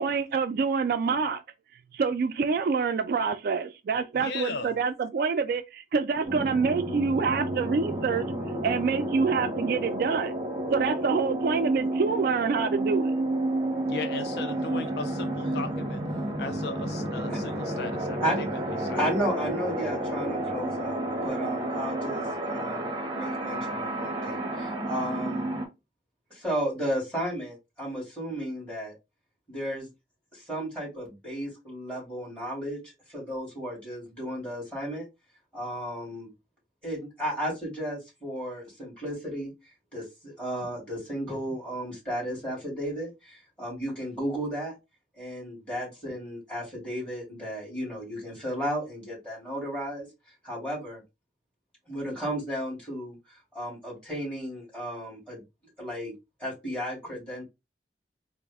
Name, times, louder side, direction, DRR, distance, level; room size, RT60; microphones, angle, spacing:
voice 1, 0.0-1.4 1.9-8.3 8.6-10.4 10.7-13.1, right 5 dB, 55° right, 0.3 m, -26 dB
voice 2, 4.2-4.7 13.9-16.0 16.4-18.5 18.9-19.0, left 4 dB, 60° left, 0.3 m, -36 dB
sound 1, 6.2-25.7, right 1 dB, 30° right, 0.7 m, -31 dB
voice 3, 19.0-25.5 26.3-28.9 29.5-29.9 30.3-35.0 35.5-36.3 36.8-39.5 39.9-44.7 45.2-50.1 50.4-51.0 51.9-53.2 53.5-55.4 55.8-56.1 56.4-57.4, equal, 5° left, 2.3 m, -34 dB
4.0 x 2.0 x 3.4 m
head